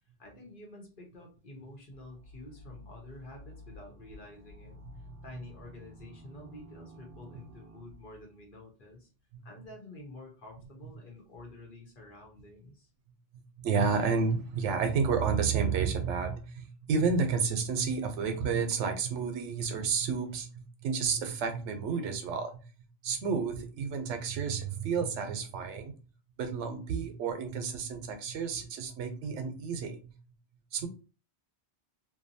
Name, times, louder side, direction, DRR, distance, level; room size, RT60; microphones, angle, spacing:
voice 1, 0.2-9.1 9.4-12.9, left 1 dB, 50° left, 0 dB, 0.9 m, -49 dB
sound 1, 1.9-8.2, equal, 60° right, 0.7 m, -52 dB
voice 2, 4.8-5.2 9.3-9.4 10.8-10.9 13.3-22.6 23.0-25.9 26.4-30.1 30.7-30.9, right 5 dB, 85° right, 6 dB, 0.9 m, -31 dB
2.7 x 2.2 x 2.6 m, 0.34 s
omnidirectional pair, 1.2 m